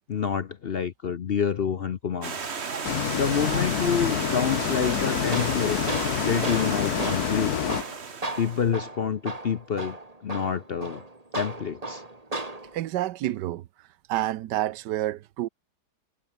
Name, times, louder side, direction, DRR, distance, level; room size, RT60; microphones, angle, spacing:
voice 1, 0.1-2.4 3.2-5.8 6.2-7.8 8.4-10.0 10.2-11.0 11.4-12.0, left 7 dB, 50° left, 0.7 m, -27 dB
Stream, 2.2-8.7, right 5 dB, 40° right, 1.6 m, -34 dB
sound 1, 2.8-7.8, left 10 dB, 65° left, 1.5 m, -28 dB
Tools, 4.8-12.8, right 2 dB, 20° right, 2.7 m, -36 dB
voice 2, 12.7-13.7 14.1-15.5, right 14 dB, 90° right, 1.3 m, -28 dB
omnidirectional pair, 1.8 m